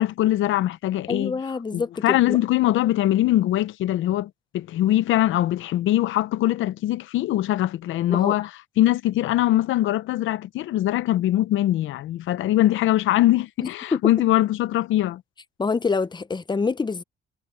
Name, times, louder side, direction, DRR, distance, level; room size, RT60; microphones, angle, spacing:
voice 1, 0.0-1.4 1.7-8.5 8.8-15.2, left 14 dB, 80° left, 0.7 m, -22 dB
voice 2, 1.1-2.4 8.1-8.4 13.6-14.0 15.6-17.0, left 4 dB, 20° left, 0.8 m, -26 dB
cardioid pair, 90°, 20 cm